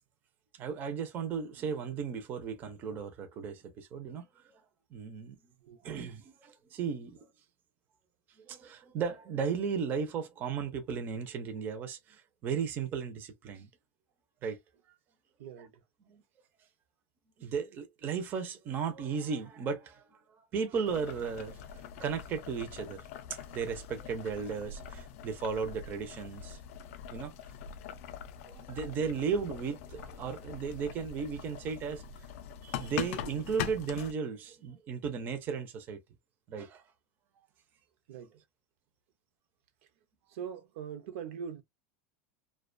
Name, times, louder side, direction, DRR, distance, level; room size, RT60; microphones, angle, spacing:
voice 1, 0.5-4.3 4.9-5.4 5.6-7.3 8.4-13.7 14.4-14.6 16.1-16.2 17.4-20.0 20.5-23.0 23.5-26.6 27.1-27.3 28.4-32.0 32.6-36.0 36.5-36.8, right 6 dB, 25° right, 0.5 m, -35 dB
voice 2, 15.4-15.7 38.1-38.4 40.3-41.6, right 7 dB, 70° right, 0.6 m, -41 dB
Boiling, 20.9-34.1, left 9 dB, 65° left, 0.4 m, -43 dB
2.4 x 2.2 x 2.4 m
supercardioid pair, 175°, 8 cm